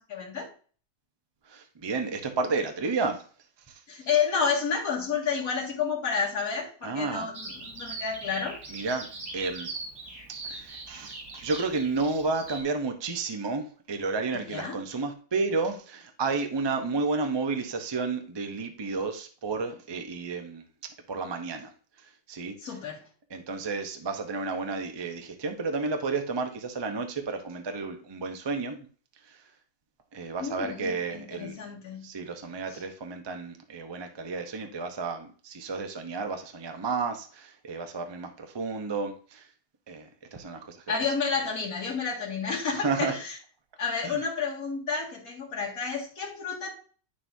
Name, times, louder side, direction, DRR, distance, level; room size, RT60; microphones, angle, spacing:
voice 1, 0.1-0.5 3.9-8.6 14.5-14.8 22.6-23.0 30.4-32.1 32.7-32.8 40.9-43.4 43.8-46.7, left 6 dB, 55° left, -4 dB, 2.5 m, -30 dB
voice 2, 1.4-3.3 3.7-3.8 6.8-7.3 8.7-9.1 9.3-9.7 10.4-20.6 21.1-21.7 22.0-22.5 23.3-28.8 29.2-29.4 30.1-31.6 32.0-39.5 39.9-40.8 42.7-43.1 44.0-44.2, right 4 dB, 35° right, 5 dB, 0.4 m, -31 dB
Bird vocalization bird call bird song, 7.3-12.6, right 3 dB, 70° right, 3.3 m, -41 dB
9.3 x 6.8 x 2.7 m, 0.41 s
omnidirectional pair, 1.9 m